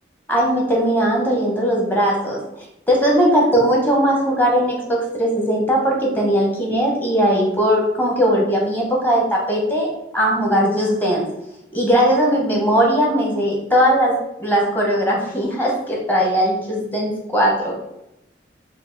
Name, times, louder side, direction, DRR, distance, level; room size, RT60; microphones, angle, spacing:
voice 1, 0.3-2.4 2.9-11.3 11.7-17.7, equal, 10° left, -2 dB, 0.9 m, -19 dB
4.5 x 2.3 x 3.8 m, 0.83 s
head